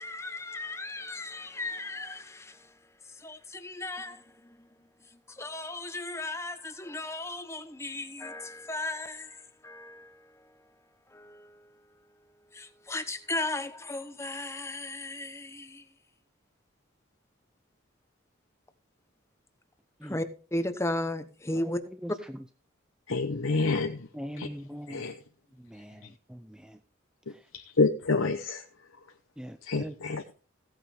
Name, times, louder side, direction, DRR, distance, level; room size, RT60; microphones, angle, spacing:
voice 1, 0.0-2.7 3.2-4.5 5.3-10.2 11.1-11.6 12.5-15.9 20.0-21.8, left 2 dB, 15° left, 1.0 m, -36 dB
voice 2, 23.1-24.1 24.4-24.5 24.9-25.2 27.3-28.6 29.6-30.2, left 3 dB, 75° left, 0.9 m, -28 dB
voice 3, 24.1-25.0 25.6-26.8 29.4-29.9, equal, 5° right, 0.5 m, -41 dB
16.0 x 8.9 x 3.5 m
head